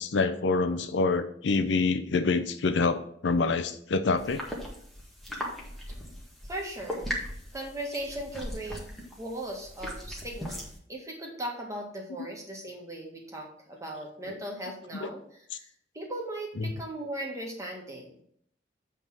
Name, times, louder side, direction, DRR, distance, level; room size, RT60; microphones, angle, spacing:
voice 1, 0.0-4.4 14.3-14.4 14.9-15.1 16.6-16.7, left 3 dB, 70° left, 10 dB, 0.6 m, -26 dB
sound 1, 4.2-10.8, equal, ahead, 1.7 m, -39 dB
voice 2, 6.4-7.0 7.5-8.8 9.2-15.2 15.5-15.7 15.9-18.1, right 1 dB, 20° right, -1 dB, 1.8 m, -38 dB
8.0 x 3.7 x 6.1 m, 0.66 s
head